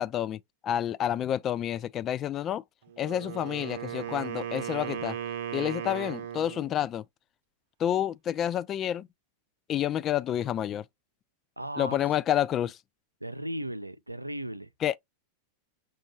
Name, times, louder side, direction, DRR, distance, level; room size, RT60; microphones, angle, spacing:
voice 1, 0.0-2.6 3.0-5.2 5.5-7.0 7.8-9.1 9.7-10.8 11.8-12.8 14.8-15.0, left 11 dB, 30° left, 0.4 m, -29 dB
Wind instrument woodwind instrument, 2.9-6.8, right 9 dB, 55° right, 0.8 m, -36 dB
voice 2, 11.6-12.0 13.2-14.7, right 1 dB, 85° right, 0.4 m, -36 dB
6.1 x 2.3 x 3.0 m
figure-of-eight pair, 90°, 0 cm